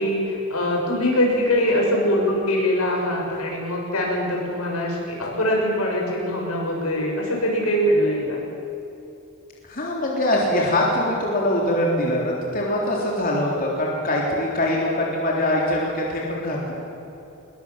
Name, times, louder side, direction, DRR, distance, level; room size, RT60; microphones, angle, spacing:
voice 1, 0.0-8.4, equal, 85° left, -1 dB, 6.8 m, -23 dB
voice 2, 9.6-16.7, left 1 dB, 40° left, -3 dB, 3.6 m, -23 dB
22.5 x 22.0 x 7.5 m, 2.9 s
head